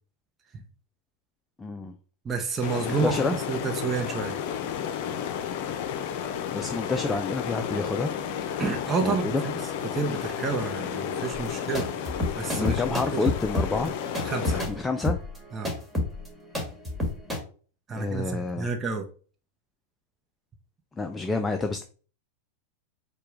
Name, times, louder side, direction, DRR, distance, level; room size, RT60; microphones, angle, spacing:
voice 1, 1.6-1.9 3.0-3.4 6.5-8.1 9.0-9.4 12.5-13.9 14.7-15.2 17.9-18.7 21.0-21.8, left 3 dB, 15° left, 6 dB, 0.4 m, -28 dB
voice 2, 2.2-4.4 8.6-9.5 9.9-11.9 12.4-12.8 13.1-13.2 14.2-14.6 15.5-15.7 17.9-19.0, right 4 dB, 25° right, 2 dB, 0.8 m, -29 dB
sound 1, 2.6-14.6, left 8 dB, 55° left, 0.6 m, -32 dB
sound 2, 11.5-17.4, left 2 dB, 5° right, 1.6 m, -29 dB
4.8 x 2.2 x 4.8 m, 0.39 s
hypercardioid pair, 110°, 0 cm